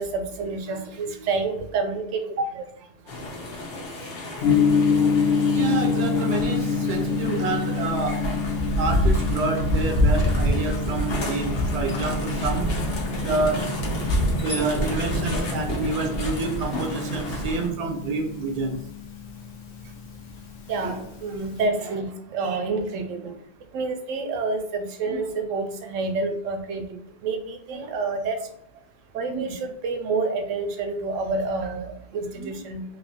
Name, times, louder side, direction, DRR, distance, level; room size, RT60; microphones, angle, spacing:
voice 1, 0.0-2.2 2.6-2.7 4.3-4.5 5.0-5.1 20.7-23.3 23.7-28.4 29.1-32.8, right 3 dB, 90° right, 6 dB, 1.0 m, -28 dB
sound 1, 3.1-17.7, left 1 dB, 55° left, 0.9 m, -27 dB
Gong, 4.4-21.7, left 5 dB, 85° left, 1.0 m, -28 dB
voice 2, 5.5-8.3 8.8-12.7 13.2-13.7 14.4-18.9, right 3 dB, 50° right, 2 dB, 0.5 m, -28 dB
3.2 x 2.9 x 2.7 m, 0.72 s
omnidirectional pair, 1.3 m